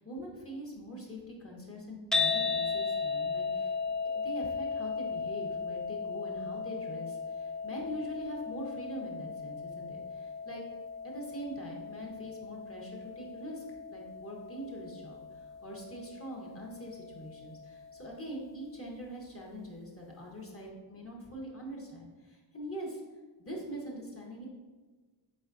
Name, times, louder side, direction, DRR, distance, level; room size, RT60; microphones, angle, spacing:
voice 1, 0.0-3.7 4.0-10.6 11.0-13.6 13.9-23.0 23.4-24.5, equal, 25° left, -2 dB, 1.3 m, -43 dB
sound 1, 2.1-18.3, left 5 dB, ahead, 0.5 m, -36 dB
4.1 x 3.9 x 2.7 m, 1.3 s
cardioid pair, 45°, 49 cm